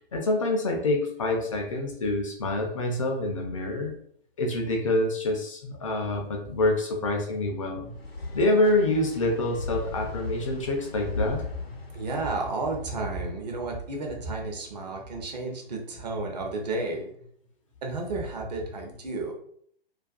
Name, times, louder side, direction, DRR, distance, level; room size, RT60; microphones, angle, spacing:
voice 1, 0.1-3.9 4.4-7.9 8.3-11.4, left 2 dB, 35° left, 1 dB, 0.4 m, -26 dB
voice 2, 7.2-8.3 11.6-17.2 17.8-19.3, right 2 dB, 45° right, 2 dB, 0.6 m, -33 dB
sound 1, 7.9-12.8, left 2 dB, 85° left, 0.7 m, -38 dB
2.4 x 2.2 x 2.3 m, 0.63 s
figure-of-eight pair, 125°, 30 cm